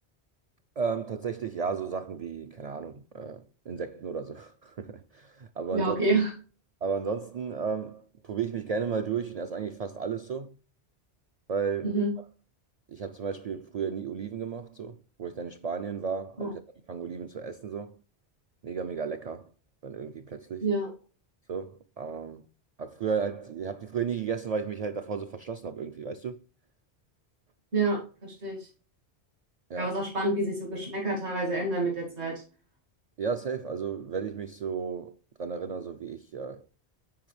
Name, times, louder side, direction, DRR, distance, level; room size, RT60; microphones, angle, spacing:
voice 1, 0.8-6.0 6.8-10.6 11.5-11.9 12.9-16.6 16.9-18.0 18.6-19.5 19.8-20.6 21.5-22.5 22.8-26.4 29.7-30.0 33.2-36.6, right 6 dB, 55° right, 0.4 m, -34 dB
voice 2, 5.7-6.3 11.8-12.1 16.4-16.5 20.6-20.9 27.7-28.7 29.8-32.4, right 2 dB, 85° right, 2.6 m, -28 dB
9.3 x 4.6 x 3.2 m
omnidirectional pair, 1.1 m